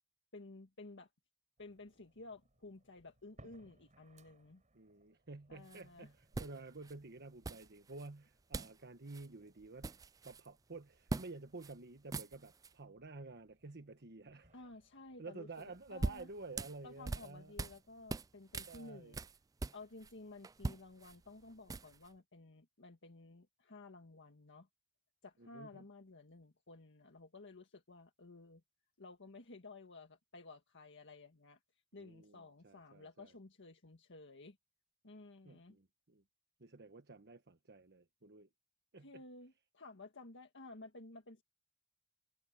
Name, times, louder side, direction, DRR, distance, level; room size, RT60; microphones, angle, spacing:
voice 1, 0.3-1.1 1.6-4.6 5.5-6.1 14.5-16.3 16.8-19.2 19.7-24.7 25.2-28.6 29.0-31.6 31.9-34.6 35.0-35.8 39.0-41.4, left 3 dB, 60° left, 1.7 m, -54 dB
sound 1, 1.6-17.9, right 1 dB, 35° right, 6.9 m, -70 dB
voice 2, 4.7-10.0 10.2-14.6 15.2-17.5 18.7-19.2 25.4-25.8 31.9-33.3 35.4-36.2 36.6-38.5 38.9-39.2, right 3 dB, 50° right, 1.3 m, -51 dB
sound 2, 5.7-5.8 6.3-6.9 7.4-8.1 8.5-8.8 9.1-9.3 9.6-10.5 11.1-11.3 11.6-11.7 12.0-12.7 15.6-17.8 18.1-20.1 20.4-22.1, right 3 dB, 15° right, 0.3 m, -42 dB
head